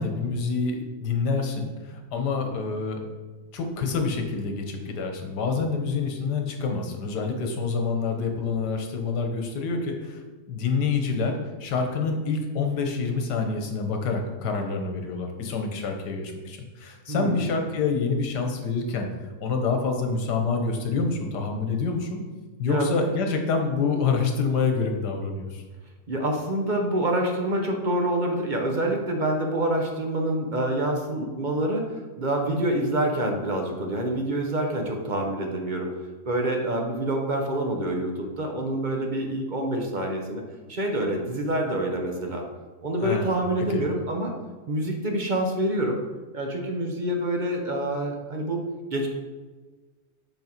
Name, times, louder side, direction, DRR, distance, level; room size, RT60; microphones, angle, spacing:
voice 1, 0.0-3.1 3.5-10.2 10.5-19.1 19.4-22.2 22.6-25.6 43.0-43.4 43.7-43.8, left 4 dB, 80° left, 4 dB, 1.6 m, -27 dB
voice 2, 17.1-17.4 22.6-22.9 26.1-35.9 36.3-40.4 40.7-42.4 42.8-44.3 44.7-46.0 46.3-48.6 48.9-49.1, right 1 dB, 40° right, 1 dB, 0.7 m, -26 dB
6.0 x 5.5 x 4.5 m, 1.3 s
omnidirectional pair, 1.7 m